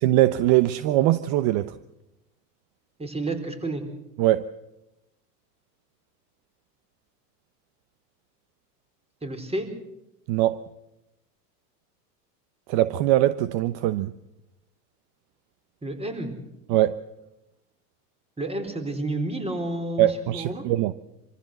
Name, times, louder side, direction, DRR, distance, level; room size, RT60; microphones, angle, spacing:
voice 1, 0.0-1.7 4.2-4.5 10.3-10.6 12.7-14.1 16.7-17.0 20.0-20.9, right 14 dB, 50° right, 1.0 m, -22 dB
voice 2, 3.0-3.8 9.2-9.7 15.8-16.3 18.4-20.1 20.3-20.6, right 2 dB, 10° right, 4.3 m, -30 dB
25.5 x 15.0 x 7.9 m
hypercardioid pair, 110°, 48 cm